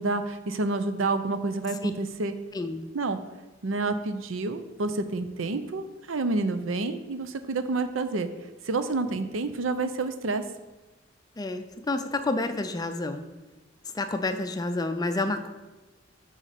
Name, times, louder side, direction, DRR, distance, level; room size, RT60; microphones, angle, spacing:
voice 1, 0.0-2.3 2.9-3.2 3.6-8.3 8.6-10.4, right 3 dB, 80° right, 10 dB, 0.6 m, -29 dB
voice 2, 11.4-13.2 13.9-15.5, left 2 dB, 20° left, 8 dB, 0.4 m, -29 dB
7.3 x 4.0 x 6.6 m, 1.1 s
head